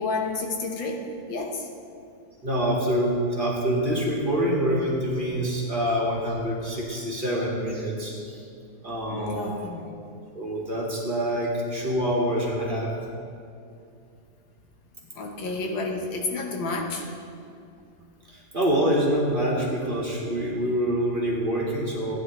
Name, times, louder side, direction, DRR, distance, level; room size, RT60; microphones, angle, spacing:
voice 1, 0.0-1.7 9.1-9.9 15.2-17.1, left 3 dB, 85° left, 2 dB, 1.8 m, -30 dB
voice 2, 2.4-8.4 8.8-9.6 10.3-12.9 15.4-15.5 18.3-22.2, equal, 25° right, -5 dB, 2.1 m, -26 dB
16.0 x 10.0 x 3.2 m, 2.5 s
omnidirectional pair, 2.0 m